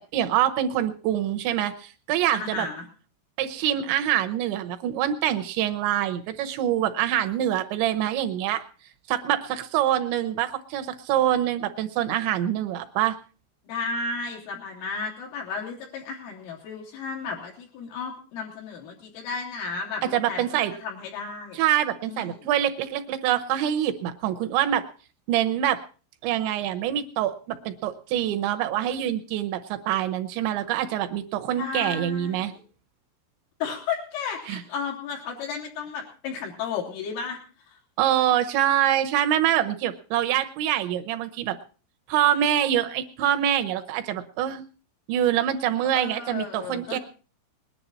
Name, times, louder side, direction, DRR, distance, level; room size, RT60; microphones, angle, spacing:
voice 1, 0.1-2.7 3.4-8.6 9.1-13.2 20.1-20.7 21.5-24.8 25.3-25.8 26.2-32.5 34.5-34.6 38.0-41.6 42.1-44.6 45.1-47.0, right 11 dB, 75° right, 8 dB, 2.9 m, -25 dB
voice 2, 2.3-2.9 13.7-21.6 22.1-22.5 31.6-32.6 33.6-37.8 45.9-47.0, left 5 dB, 80° left, -2 dB, 5.4 m, -34 dB
20.5 x 11.0 x 4.3 m, 0.38 s
omnidirectional pair, 5.7 m